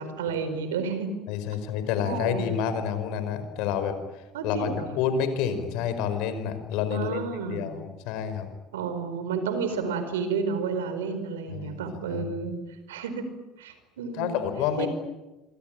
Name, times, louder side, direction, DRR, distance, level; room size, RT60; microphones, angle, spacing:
voice 1, 0.0-1.1 2.0-2.5 4.3-5.0 6.9-7.7 8.7-12.5 12.9-13.2 13.6-14.4 14.8-14.9, right 5 dB, 85° right, 9 dB, 4.6 m, -31 dB
voice 2, 1.3-3.9 4.4-4.7 5.0-7.2 7.5-8.5 11.5-11.8 12.1-12.2 14.2-14.9, left 8 dB, 70° left, 10 dB, 4.9 m, -28 dB
26.5 x 25.0 x 9.0 m, 1.1 s
hypercardioid pair, 70°, 0 cm